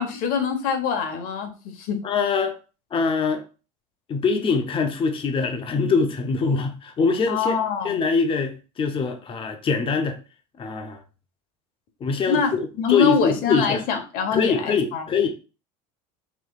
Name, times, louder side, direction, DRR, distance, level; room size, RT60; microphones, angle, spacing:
voice 1, 0.0-2.1 7.3-8.0 12.3-15.0, left 6 dB, 55° left, 1.2 m, -25 dB
voice 2, 2.0-2.6 2.9-3.4 4.1-7.6 7.8-10.2 10.6-11.0 12.0-13.8 14.3-15.3, left 5 dB, 30° left, 0.8 m, -23 dB
5.6 x 3.1 x 2.4 m
supercardioid pair, 95°, 18 cm